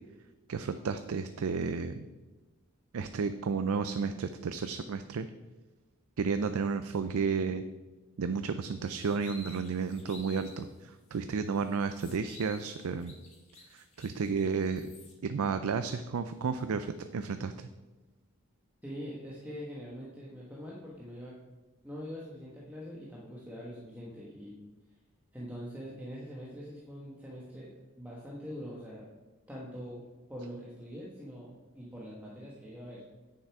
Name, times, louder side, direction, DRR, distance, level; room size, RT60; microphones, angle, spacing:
voice 1, 0.5-2.1 2.9-5.3 6.2-7.6 8.2-13.1 13.7-14.9 15.2-17.7, right 5 dB, 70° right, 10 dB, 0.4 m, -32 dB
sound 1, 8.8-10.6 11.1-11.2 11.6-15.1, left 3 dB, 30° left, 2.1 m, -53 dB
voice 2, 18.8-21.3 21.8-24.5 25.3-29.0 29.5-30.0 30.3-33.0, equal, 5° right, -5 dB, 1.2 m, -43 dB
9.0 x 6.8 x 4.7 m, 1.2 s
head